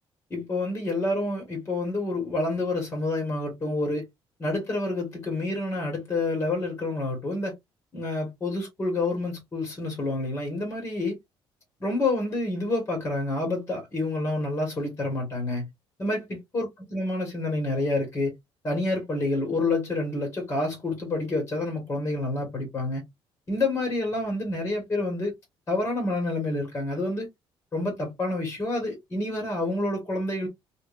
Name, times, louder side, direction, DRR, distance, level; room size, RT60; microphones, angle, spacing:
voice 1, 0.3-4.0 4.4-7.5 7.9-11.2 11.8-15.7 16.0-18.3 18.6-23.0 23.5-25.3 25.7-27.3 27.7-30.5, left 2 dB, 25° left, 1.4 m, -28 dB
3.5 x 2.5 x 2.4 m
cardioid pair, 160°, 9 cm